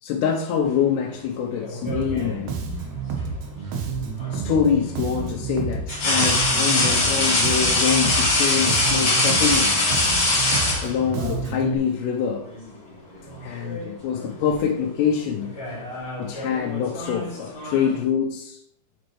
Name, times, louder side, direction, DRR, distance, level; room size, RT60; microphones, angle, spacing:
voice 1, 0.0-2.6 4.3-10.0 10.8-12.5 13.4-15.5 16.2-18.6, left 7 dB, 85° left, -1 dB, 2.9 m, -25 dB
sound 1, 1.6-2.4 4.2-4.4 5.9-11.3 12.5-12.7 13.1-13.9 14.2-14.5 15.4-18.0, left 2 dB, 35° left, 2.6 m, -23 dB
Bass guitar, 1.9-11.8, right 5 dB, 90° right, 3.2 m, -30 dB
10.5 x 5.2 x 3.1 m, 0.69 s
omnidirectional pair, 4.8 m